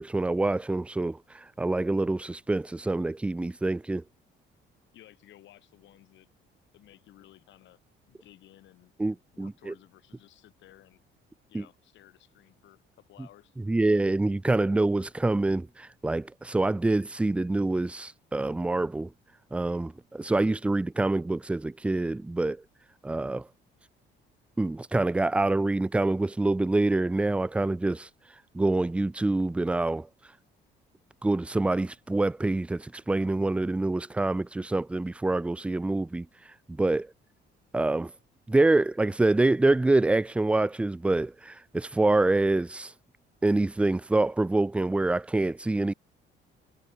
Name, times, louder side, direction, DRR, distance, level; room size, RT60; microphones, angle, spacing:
voice 1, 0.0-4.0 9.0-9.7 11.5-11.6 13.6-19.1 19.5-22.6 23.0-23.5 24.6-28.1 28.5-30.1 31.2-36.3 36.7-37.1 37.7-38.1 38.5-42.9 43.4-45.9, right 2 dB, 5° right, 0.4 m, -26 dB
voice 2, 4.9-6.3 6.7-7.8 8.1-8.9 9.3-11.0 11.5-13.6, left 14 dB, 70° left, 7.5 m, -56 dB
cardioid pair, 150°, 20 cm